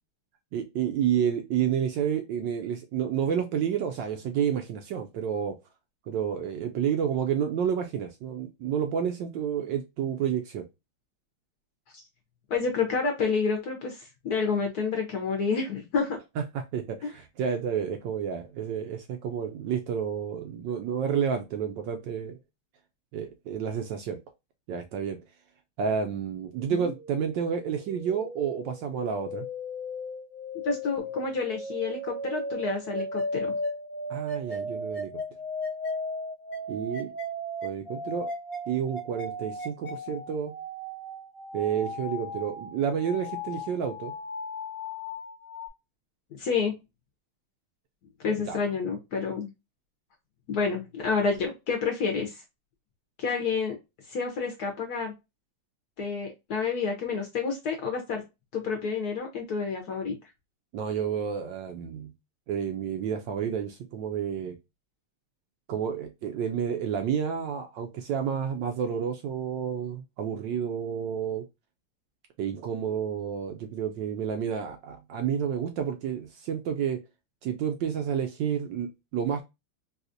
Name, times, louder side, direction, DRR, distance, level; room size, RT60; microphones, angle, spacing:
voice 1, 0.5-5.6 6.1-10.6 16.4-22.4 23.1-24.2 24.7-25.2 25.8-29.5 34.1-35.1 36.7-37.1 37.6-38.3 38.7-40.5 41.5-44.1 48.4-48.6 60.7-62.1 62.5-64.6 65.7-71.4 72.4-77.0 77.4-79.4, right 8 dB, 75° right, 1.1 m, -30 dB
voice 2, 12.5-16.2 17.0-17.1 26.8-26.9 30.6-33.5 46.4-46.7 48.2-49.5 50.5-52.4 53.2-53.8 54.1-55.1 56.0-58.2 58.5-60.1, left 5 dB, 65° left, 1.0 m, -29 dB
sound 1, 26.5-45.7, left 1 dB, 25° left, 1.1 m, -36 dB
4.0 x 2.4 x 2.5 m
omnidirectional pair, 2.3 m